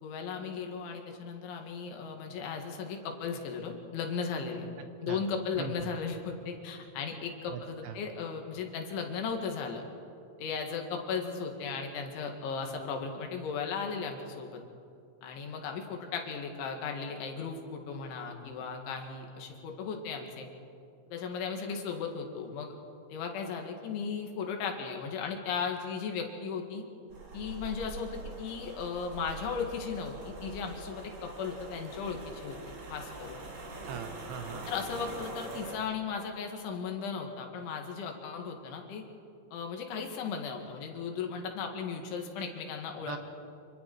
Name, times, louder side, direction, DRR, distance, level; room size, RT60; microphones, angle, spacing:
voice 1, 0.0-4.7 5.0-9.8 10.4-14.6 15.2-20.5 21.1-22.8 23.1-26.8 27.3-32.6 32.9-33.4 34.7-39.1 39.5-43.2, left 5 dB, 75° left, 3 dB, 4.3 m, -36 dB
voice 2, 7.5-8.0 33.9-34.7 43.1-43.2, right 8 dB, 75° right, 7 dB, 2.8 m, -40 dB
sound 1, 27.1-35.7, right 2 dB, 55° right, 5.4 m, -44 dB
27.5 x 25.5 x 4.7 m, 2.5 s
omnidirectional pair, 5.5 m